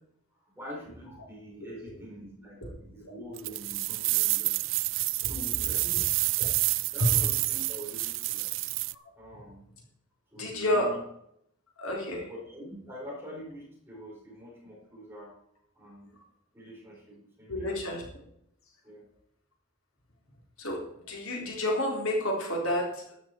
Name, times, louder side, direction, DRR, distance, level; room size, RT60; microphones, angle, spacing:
voice 1, 0.4-4.5 4.8-6.0 6.9-8.8 9.2-9.6 10.3-11.0 12.3-15.3 15.7-16.2 16.5-17.8 18.8-19.1, equal, 10° right, -4 dB, 4.6 m, -45 dB
sound 1, 3.4-8.9, right 21 dB, 60° right, 0.3 m, -28 dB
voice 2, 5.6-6.0 6.4-6.5 7.0-7.1 8.9-9.0 9.3-9.4 10.4-10.9 11.8-12.3 17.5-18.1 20.6-23.0, left 1 dB, 80° left, -1 dB, 3.9 m, -30 dB
12.5 x 10.5 x 4.5 m, 0.72 s
head